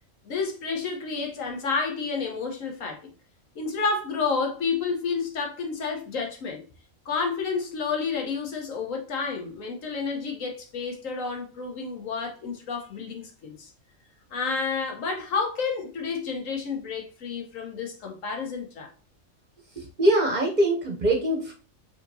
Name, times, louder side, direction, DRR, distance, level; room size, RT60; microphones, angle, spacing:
voice 1, 0.2-3.0 3.5-6.6 7.0-13.7 14.3-18.9, left 5 dB, 85° left, 1.4 m, -30 dB
voice 2, 19.8-21.5, right 1 dB, 45° right, 0.7 m, -23 dB
4.9 x 2.9 x 2.7 m
omnidirectional pair, 1.3 m